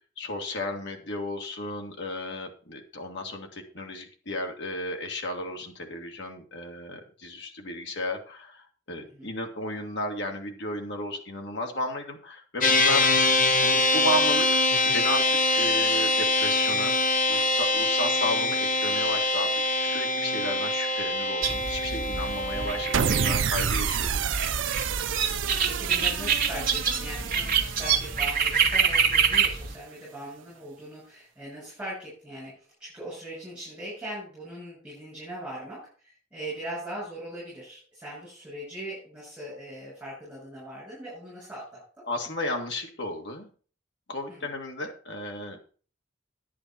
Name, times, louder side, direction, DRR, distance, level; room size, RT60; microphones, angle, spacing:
voice 1, 0.2-13.1 13.5-14.5 14.8-16.9 17.3-24.6 42.1-43.5 44.1-45.6, left 1 dB, 60° left, 3 dB, 2.0 m, -34 dB
voice 2, 9.0-9.3 13.0-13.2 22.5-22.9 25.6-41.8 44.3-44.5, right 1 dB, 5° right, -7 dB, 6.8 m, -40 dB
sound 1, 12.6-23.4, left 2 dB, 45° left, 1.3 m, -24 dB
sound 2, 21.4-29.8, right 6 dB, 45° right, 1.4 m, -27 dB
sound 3, 22.9-29.3, right 7 dB, 70° right, 0.5 m, -30 dB
10.0 x 8.6 x 4.3 m, 0.40 s
head